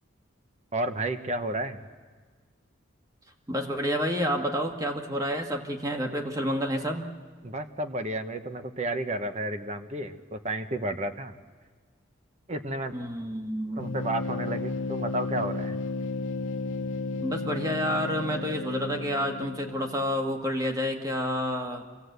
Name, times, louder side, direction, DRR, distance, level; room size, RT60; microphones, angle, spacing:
voice 1, 0.7-1.8 7.4-11.3 12.5-12.9 13.8-15.8, right 1 dB, 35° right, 7 dB, 1.0 m, -32 dB
voice 2, 3.5-7.0 12.9-13.9 17.2-21.9, equal, 20° right, 3 dB, 1.7 m, -29 dB
sound 1, 13.8-20.4, left 3 dB, 70° left, 0.7 m, -33 dB
26.0 x 16.5 x 8.1 m, 1.5 s
head